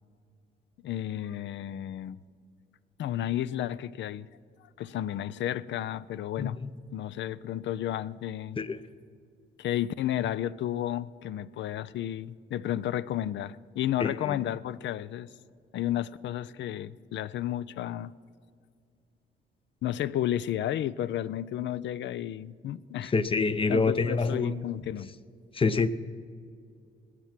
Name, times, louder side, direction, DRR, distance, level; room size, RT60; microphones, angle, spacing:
voice 1, 0.8-2.2 3.0-4.3 4.8-6.6 6.9-8.6 9.6-15.3 15.7-18.1 19.8-23.1 23.7-25.1, left 12 dB, 65° left, 0.5 m, -32 dB
voice 2, 6.4-6.7 8.6-8.8 14.0-14.4 23.1-24.6 25.5-25.9, left 4 dB, 25° left, 0.7 m, -27 dB
20.5 x 8.2 x 5.9 m
cardioid pair, 90°, 20 cm